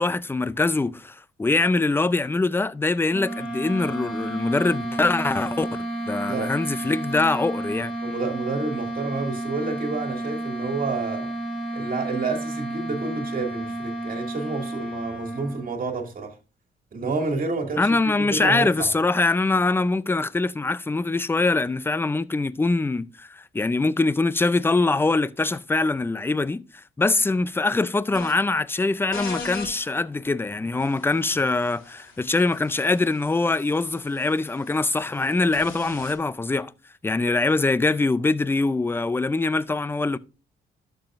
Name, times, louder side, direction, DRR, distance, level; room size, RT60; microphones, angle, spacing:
voice 1, 0.0-7.9 17.8-36.7 37.0-40.2, left 3 dB, 10° left, 0.4 m, -23 dB
sound 1, 3.1-15.8, right 1 dB, 30° left, 5.5 m, -31 dB
voice 2, 8.0-11.3 11.7-16.4 16.9-18.0 18.3-18.9, right 3 dB, 45° right, 2.3 m, -29 dB
sound 2, 28.1-28.3 29.1-29.7 30.8-36.1, left 4 dB, 80° left, 2.5 m, -40 dB
11.5 x 6.8 x 2.5 m
cardioid pair, 90°, 20 cm